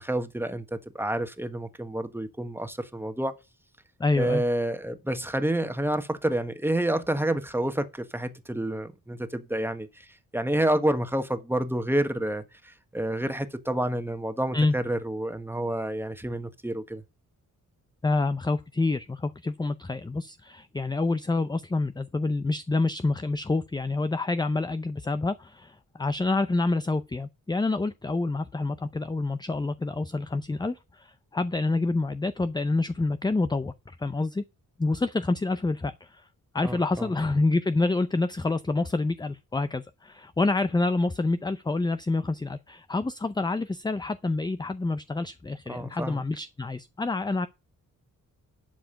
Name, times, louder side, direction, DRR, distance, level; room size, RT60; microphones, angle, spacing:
voice 1, 0.0-3.3 4.2-10.1 10.3-17.0 36.6-37.1 45.7-46.2, right 1 dB, 5° right, 1.4 m, -29 dB
voice 2, 4.0-4.4 14.5-14.7 18.0-34.4 34.8-36.2 36.5-47.5, left 3 dB, 10° left, 0.5 m, -27 dB
11.5 x 4.8 x 5.8 m
cardioid pair, 75°, 34 cm